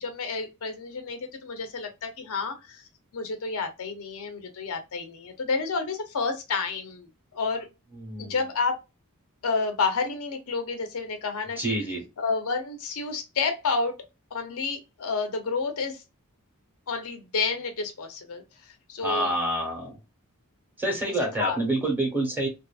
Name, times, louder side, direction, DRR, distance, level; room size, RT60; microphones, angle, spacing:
voice 1, 0.0-2.8 3.1-7.7 8.2-8.8 9.4-11.8 12.2-13.9 14.3-16.0 16.9-18.4 18.9-19.3 21.0-21.8, left 4 dB, 70° left, 0.6 m, -30 dB
voice 2, 8.0-8.4 11.6-12.0 19.0-20.0 20.8-22.5, right 1 dB, 10° right, 1.0 m, -27 dB
2.6 x 2.6 x 2.3 m
head